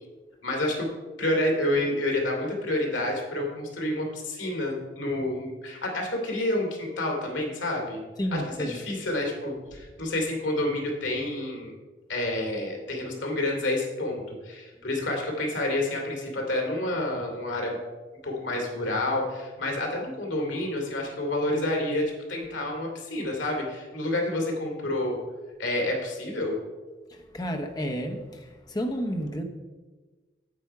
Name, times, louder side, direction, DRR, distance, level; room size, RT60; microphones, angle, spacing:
voice 1, 0.4-0.9 1.2-8.0 8.3-11.7 12.1-17.8 18.2-25.2 25.6-26.6, left 1 dB, 80° left, 2.6 m, -29 dB
voice 2, 8.2-8.8 27.3-29.4, equal, 20° left, 0.8 m, -31 dB
9.0 x 7.9 x 4.7 m
head